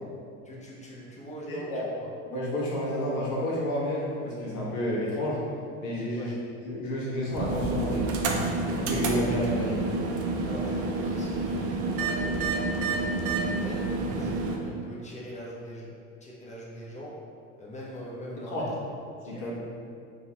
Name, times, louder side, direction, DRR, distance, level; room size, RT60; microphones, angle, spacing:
voice 1, 0.4-2.1 6.1-6.4 10.5-12.6 12.9-13.0 13.4-16.0 16.2-17.3 17.6-18.8 19.2-19.5, equal, 20° left, -4 dB, 0.7 m, -41 dB
voice 2, 1.5-1.8 2.3-5.4 5.8-6.3 6.6-8.1 8.8-9.9 18.5-18.7 19.3-19.6, left 1 dB, 65° left, -6 dB, 1.2 m, -30 dB
sound 1, 7.2-14.6, right 3 dB, 40° right, 0.5 m, -29 dB
3.5 x 3.0 x 2.8 m, 2.4 s
hypercardioid pair, 85°, 37 cm